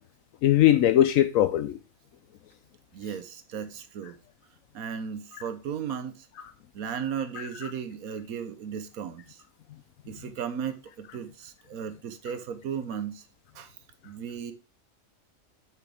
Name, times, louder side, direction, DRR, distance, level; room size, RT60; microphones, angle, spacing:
voice 1, 0.4-1.8 5.3-5.4 6.4-6.5 7.3-7.7, left 12 dB, 75° left, 1.0 m, -22 dB
voice 2, 2.9-4.2 4.7-6.3 6.7-9.4 10.1-13.3 13.5-13.7 14.0-14.5, right 7 dB, 85° right, 1.3 m, -35 dB
9.0 x 6.1 x 3.4 m
omnidirectional pair, 1.5 m